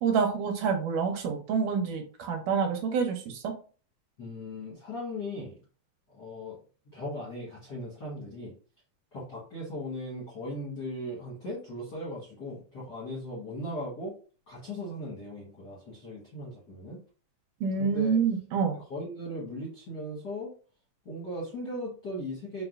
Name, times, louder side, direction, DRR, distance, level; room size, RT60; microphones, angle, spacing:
voice 1, 0.0-3.5 17.6-18.8, right 6 dB, 70° right, 3 dB, 1.7 m, -27 dB
voice 2, 4.2-5.5 6.1-6.6 6.9-8.5 9.1-14.1 14.5-17.0 17.8-18.2 18.7-20.5 21.0-22.6, left 1 dB, 50° left, -6 dB, 1.2 m, -38 dB
4.8 x 3.0 x 2.4 m, 0.39 s
omnidirectional pair, 3.5 m